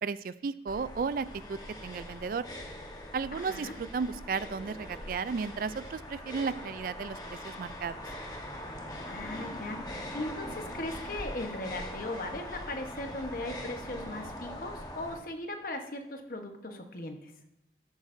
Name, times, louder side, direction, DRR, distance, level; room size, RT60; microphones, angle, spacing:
voice 1, 0.0-2.4 3.1-8.0, right 5 dB, 50° right, 16 dB, 0.3 m, -34 dB
sound 1, 0.7-15.2, left 1 dB, 20° left, 1.1 m, -42 dB
voice 2, 3.3-3.8 9.0-17.3, left 2 dB, 50° left, 5 dB, 1.1 m, -38 dB
13.0 x 8.0 x 2.6 m, 0.86 s
head